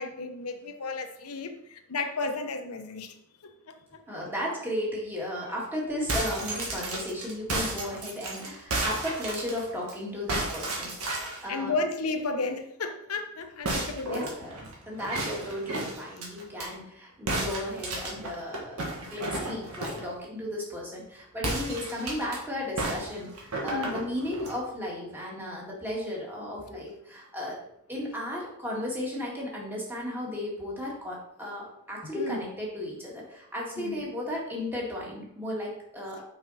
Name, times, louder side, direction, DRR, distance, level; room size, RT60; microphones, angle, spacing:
voice 1, 0.0-3.1 11.5-14.2 23.6-24.0 32.1-32.4 33.8-34.0, left 3 dB, 90° left, 7 dB, 0.9 m, -33 dB
voice 2, 4.1-11.8 14.1-18.8 19.0-27.6 27.9-36.2, left 1 dB, 10° right, -4 dB, 2.0 m, -35 dB
sound 1, 5.9-9.9 10.3-11.5 13.6-16.7 17.3-20.1 21.4-22.4 22.8-24.6, right 2 dB, 85° right, 1.7 m, -33 dB
6.1 x 5.3 x 4.1 m, 0.74 s
head